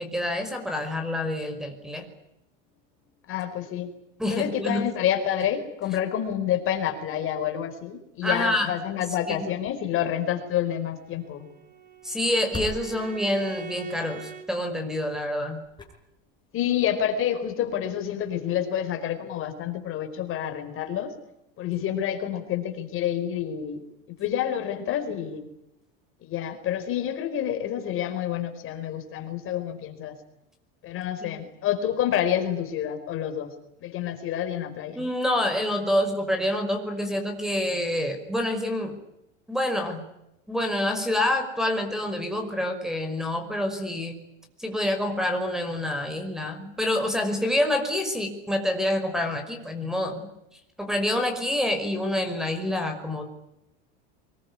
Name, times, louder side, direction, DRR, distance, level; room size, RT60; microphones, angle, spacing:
voice 1, 0.0-2.1 4.2-4.8 8.2-8.7 9.0-9.5 12.0-15.6 31.2-31.3 34.9-39.0 39.5-40.0 40.5-44.2 44.6-50.3 50.8-53.3, left 1 dB, ahead, 8 dB, 5.4 m, -27 dB
voice 2, 3.3-3.9 4.3-11.5 16.5-21.1 21.6-23.8 24.2-25.5 26.2-30.2 30.8-33.5 33.8-35.0, left 10 dB, 45° left, 7 dB, 4.7 m, -28 dB
Bowed string instrument, 10.9-14.5, right 6 dB, 30° right, 4.0 m, -44 dB
sound 1, 12.1-13.7 15.3-15.4 15.6-16.6 17.0-17.2, left 1 dB, 15° left, 6.9 m, -40 dB
24.5 x 22.0 x 9.7 m, 0.87 s
supercardioid pair, 130°, 30 cm